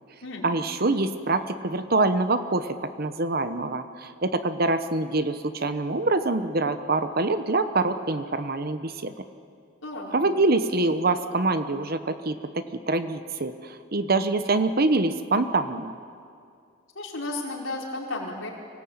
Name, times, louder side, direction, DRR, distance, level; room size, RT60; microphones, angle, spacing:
voice 1, 0.4-9.1 10.1-15.9, right 2 dB, 50° right, 10 dB, 1.0 m, -25 dB
voice 2, 9.8-10.2 16.9-18.5, left 2 dB, 80° left, -2 dB, 4.7 m, -33 dB
25.0 x 18.0 x 8.9 m, 2.3 s
head